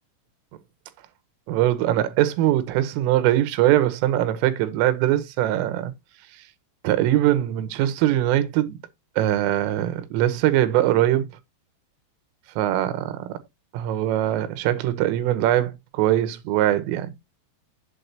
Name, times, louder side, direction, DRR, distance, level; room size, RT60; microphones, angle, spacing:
voice 1, 1.5-5.9 6.8-8.8 9.2-11.3 12.6-13.3 13.7-17.1, right 13 dB, 85° right, 3.4 m, -22 dB
8.5 x 8.0 x 2.8 m
omnidirectional pair, 6.0 m